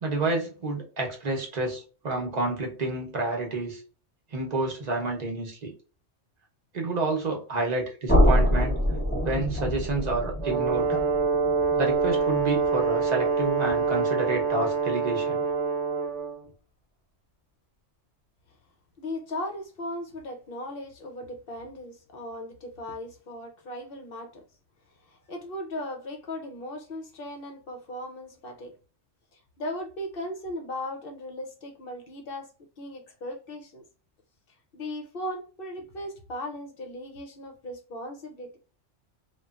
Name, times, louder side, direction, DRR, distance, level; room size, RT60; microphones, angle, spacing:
voice 1, 0.0-3.8 4.3-5.7 6.7-8.8 9.2-11.0 11.8-15.4, right 2 dB, 40° right, 0.8 m, -29 dB
sound 1, 8.1-14.0, equal, 10° left, 0.8 m, -26 dB
Brass instrument, 10.4-16.4, right 5 dB, 75° right, 0.9 m, -26 dB
voice 2, 19.0-24.4 25.1-28.7 29.3-32.5 32.8-33.8 34.7-38.6, left 1 dB, 55° left, 0.7 m, -37 dB
3.0 x 2.3 x 2.3 m
omnidirectional pair, 1.3 m